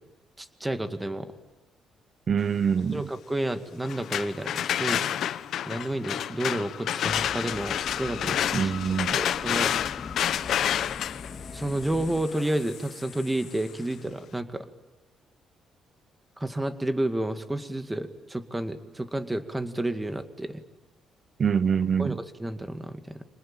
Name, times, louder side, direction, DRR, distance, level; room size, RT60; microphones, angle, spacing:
voice 1, 0.4-1.3 2.9-5.0 5.7-8.7 9.2-9.9 11.5-14.7 16.4-20.6 22.0-23.2, right 1 dB, 10° right, 2.2 m, -31 dB
voice 2, 2.3-3.1 8.5-9.2 21.4-22.2, right 7 dB, 45° right, 1.0 m, -25 dB
sound 1, 3.8-13.7, left 10 dB, 70° left, 0.9 m, -30 dB
sound 2, 7.1-12.3, left 4 dB, 35° left, 2.2 m, -41 dB
26.5 x 20.0 x 8.9 m
cardioid pair, 90°, 0 cm